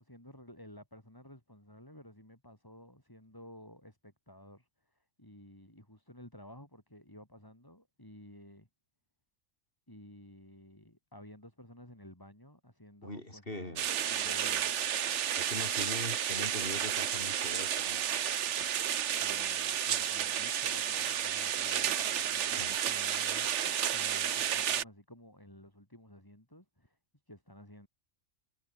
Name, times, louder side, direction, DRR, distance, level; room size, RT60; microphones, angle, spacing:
voice 1, 0.0-4.7 5.2-8.7 9.9-14.7 19.0-27.0 27.3-27.9, left 1 dB, 15° left, 5.3 m, -53 dB
voice 2, 13.0-13.8 15.4-18.0 22.6-22.7, left 1 dB, 45° left, 5.6 m, -41 dB
sound 1, 13.8-24.8, right 9 dB, 65° right, 1.1 m, -32 dB
omnidirectional pair, 1.4 m